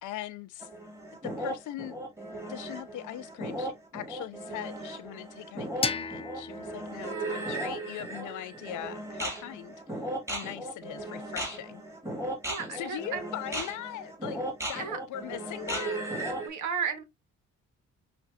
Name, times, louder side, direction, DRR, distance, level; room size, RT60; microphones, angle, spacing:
voice 1, 0.0-0.7 1.2-2.0 2.5-9.7 10.3-11.8 12.7-14.4 14.7-16.0, left 12 dB, 80° left, 0.6 m, -40 dB
sound 1, 0.6-16.5, right 1 dB, 10° right, 1.9 m, -36 dB
sound 2, 5.8-8.7, left 5 dB, 20° left, 0.4 m, -37 dB
voice 2, 7.0-7.6 12.5-13.3 14.7-15.0 16.4-17.0, right 6 dB, 75° right, 1.2 m, -35 dB
5.8 x 2.5 x 2.3 m
cardioid pair, 90°, 30 cm